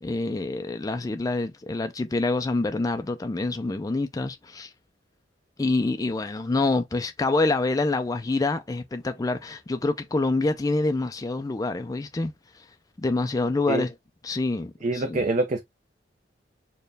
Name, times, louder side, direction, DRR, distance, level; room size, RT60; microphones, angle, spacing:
voice 1, 0.0-4.7 5.6-12.6 13.0-13.9 14.2-15.3, left 2 dB, 20° left, 0.4 m, -26 dB
voice 2, 14.8-15.6, right 2 dB, 40° right, 0.5 m, -25 dB
4.3 x 2.2 x 3.2 m
head